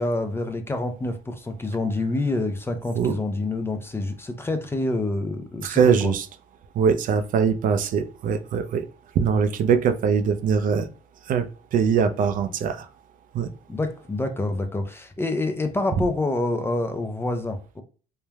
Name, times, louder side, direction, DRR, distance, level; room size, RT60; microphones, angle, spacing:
voice 1, 0.0-6.1 13.7-17.8, left 2 dB, 15° left, 0.4 m, -27 dB
voice 2, 5.6-6.3 6.8-8.9 9.2-10.9 11.3-12.9 13.3-13.5, right 6 dB, 55° right, 0.4 m, -22 dB
3.1 x 2.1 x 2.3 m
cardioid pair, 110°, 17 cm